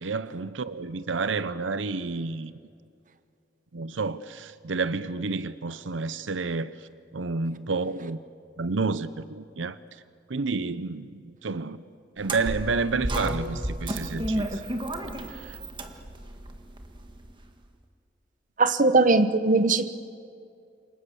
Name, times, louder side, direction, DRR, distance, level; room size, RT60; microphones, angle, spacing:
voice 1, 0.0-2.5 3.7-6.8 7.1-8.2 8.6-9.8 10.3-11.8 12.2-14.6 15.3-15.6, right 4 dB, 85° right, 0.7 m, -30 dB
sound 1, 12.2-17.4, right 1 dB, 25° right, 1.7 m, -32 dB
voice 2, 18.6-19.9, right 3 dB, 45° right, 1.0 m, -20 dB
29.0 x 25.0 x 7.1 m
head